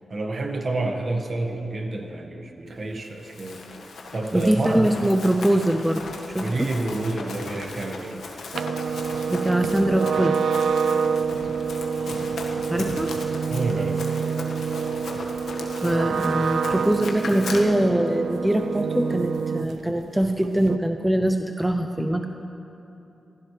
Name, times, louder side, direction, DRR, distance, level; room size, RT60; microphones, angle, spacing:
voice 1, 0.1-3.6 4.1-4.9 6.4-8.2 13.5-14.4, right 2 dB, 45° right, 3 dB, 1.6 m, -29 dB
Run, 3.0-17.6, left 3 dB, 90° left, 1.6 m, -38 dB
voice 2, 4.3-6.0 6.3-6.7 9.3-10.4 12.7-13.1 15.8-22.2, right 1 dB, 5° right, 5 dB, 0.6 m, -23 dB
sound 1, 8.5-19.9 20.2-20.8, right 6 dB, 80° right, 0.4 m, -27 dB
24.5 x 15.5 x 3.3 m, 3.0 s
wide cardioid pair, 125°, 0 cm